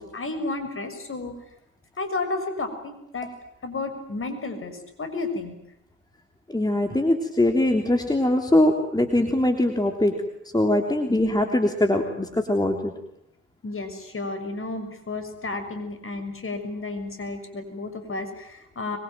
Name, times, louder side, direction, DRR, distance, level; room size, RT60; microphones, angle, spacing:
voice 1, 0.0-1.3 2.0-3.3 3.6-5.6 11.1-11.5 13.6-19.0, left 3 dB, 30° left, 8 dB, 6.5 m, -32 dB
voice 2, 6.5-10.1 10.5-12.9, left 1 dB, 10° left, 4 dB, 3.4 m, -22 dB
25.5 x 23.0 x 9.3 m, 0.80 s
figure-of-eight pair, 50°, 39 cm